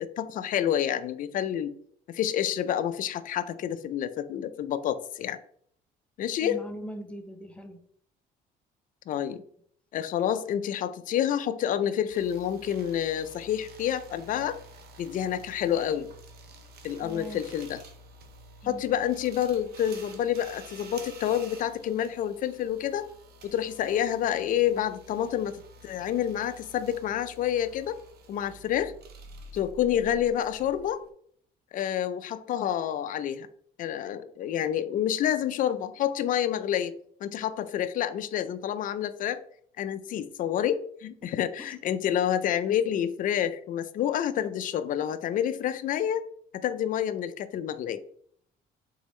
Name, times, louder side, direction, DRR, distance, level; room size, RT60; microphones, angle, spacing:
voice 1, 0.0-1.7 2.1-5.4 6.2-6.6 9.1-9.4 9.9-14.6 15.0-16.1 16.8-17.8 18.6-23.1 23.4-25.6 25.8-28.0 28.3-28.9 29.5-31.0 31.7-33.5 33.8-36.9 37.2-39.4 39.8-46.2 46.5-48.0, left 10 dB, 55° left, 0.4 m, -28 dB
voice 2, 6.4-7.8 17.0-17.4 18.6-18.8 41.2-41.3, right 1 dB, 5° left, 0.7 m, -40 dB
sound 1, 12.1-31.1, right 2 dB, 65° right, 0.8 m, -50 dB
4.0 x 3.5 x 3.1 m
cardioid pair, 110°, 17 cm